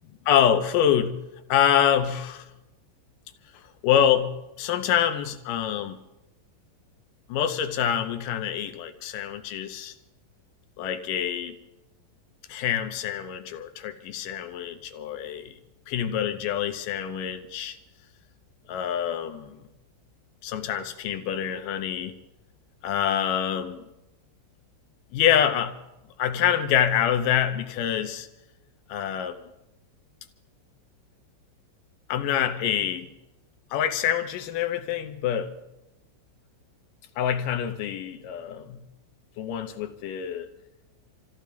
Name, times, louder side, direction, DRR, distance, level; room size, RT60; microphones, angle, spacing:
voice 1, 0.3-1.2 1.5-2.5 3.8-6.0 7.3-9.9 10.8-11.6 12.5-15.6 15.9-17.8 18.7-19.6 20.4-22.1 22.8-23.9 25.1-25.8 26.2-28.3 28.9-29.4 32.1-33.1 33.7-35.5 37.2-38.8 39.4-40.5, left 9 dB, 75° left, 2.5 m, -26 dB
27.5 x 15.5 x 3.5 m
omnidirectional pair, 3.9 m